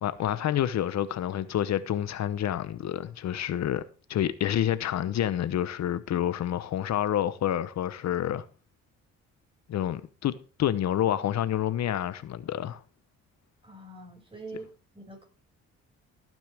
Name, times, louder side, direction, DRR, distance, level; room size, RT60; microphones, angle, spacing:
voice 1, 0.0-3.8 4.1-8.4 9.7-12.8, left 11 dB, 60° left, 0.9 m, -28 dB
voice 2, 13.6-15.2, right 3 dB, 15° right, 6.2 m, -44 dB
17.5 x 9.3 x 3.5 m
cardioid pair, 90°, 30 cm